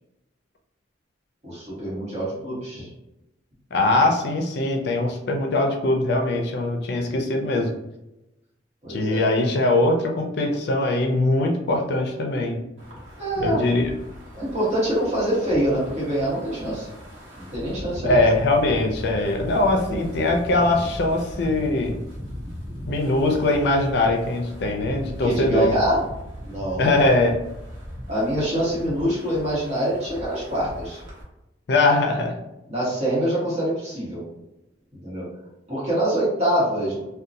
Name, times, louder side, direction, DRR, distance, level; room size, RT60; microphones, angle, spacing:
voice 1, 1.4-2.9 8.8-9.3 13.2-13.6 14.3-16.9 17.4-18.3 25.2-26.0 26.4-26.9 28.1-31.0 32.7-34.2 35.0-35.3 35.7-37.0, right 1 dB, 35° right, -7 dB, 1.2 m, -25 dB
voice 2, 3.7-7.7 8.9-12.6 13.4-13.9 18.0-22.0 22.9-25.7 26.8-27.4 31.7-32.4, left 2 dB, 60° left, 2 dB, 0.4 m, -21 dB
Wind, 12.8-31.2, equal, 85° right, 0.9 m, -38 dB
2.7 x 2.2 x 2.6 m, 0.92 s
head